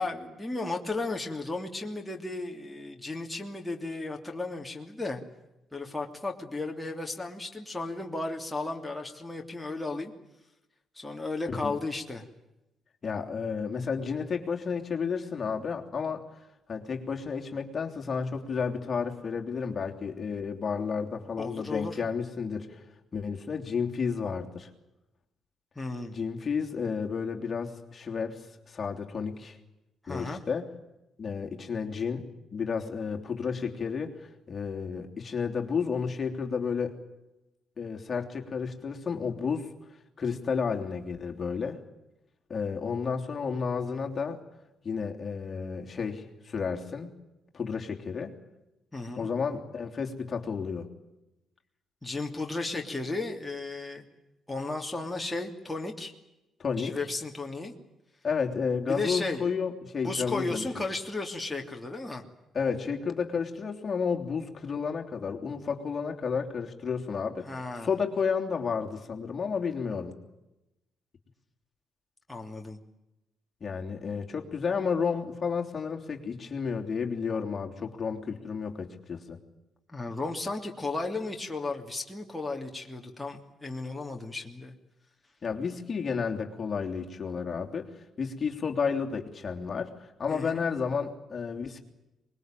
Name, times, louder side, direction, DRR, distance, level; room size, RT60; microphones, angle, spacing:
voice 1, 0.0-5.2 5.7-10.1 10.9-12.2 21.4-22.0 25.7-26.2 30.0-30.4 48.9-49.3 52.0-54.0 54.5-56.1 56.8-57.7 58.9-59.5 60.0-62.2 67.5-67.9 72.3-72.8 79.9-84.7 90.3-90.7, left 3 dB, 10° left, 1 dB, 3.1 m, -34 dB
voice 2, 13.0-16.3 16.7-22.8 23.1-24.7 26.1-29.6 30.1-30.7 31.2-32.2 32.5-37.0 37.8-39.7 40.2-41.8 42.5-44.4 44.8-47.1 47.5-48.3 49.1-50.9 56.6-57.0 58.2-60.6 62.5-67.5 67.8-70.1 73.6-79.4 85.4-87.9 88.2-91.8, left 5 dB, 40° left, 2 dB, 3.2 m, -31 dB
24.0 x 21.5 x 9.2 m, 0.95 s
cardioid pair, 90°, 0 cm